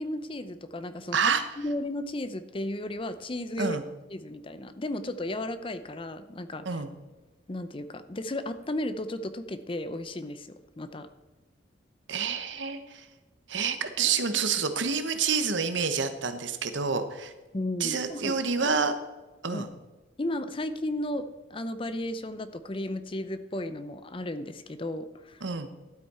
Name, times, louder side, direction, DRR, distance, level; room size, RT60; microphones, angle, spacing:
voice 1, 0.0-3.8 4.1-6.8 7.5-10.5 10.8-11.1 17.5-18.4 18.6-18.8 19.5-19.6 20.2-25.5, left 1 dB, 25° left, 11 dB, 0.6 m, -34 dB
voice 2, 12.1-13.0 13.5-17.3 17.8-18.9 19.4-19.7 25.4-25.7, right 5 dB, 70° right, 9 dB, 1.0 m, -28 dB
12.5 x 8.3 x 4.3 m, 1.2 s
head